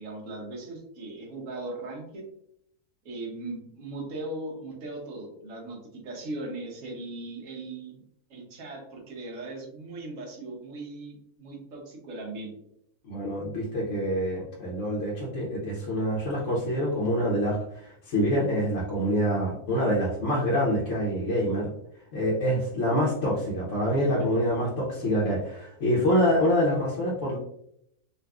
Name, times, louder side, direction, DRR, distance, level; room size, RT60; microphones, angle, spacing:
voice 1, 0.0-2.2 3.0-8.0 8.3-12.5 23.9-24.3, right 2 dB, 60° right, -1 dB, 1.2 m, -38 dB
voice 2, 13.0-21.7 22.1-27.4, equal, 55° left, -5 dB, 1.0 m, -26 dB
3.9 x 2.5 x 2.3 m, 0.73 s
omnidirectional pair, 1.6 m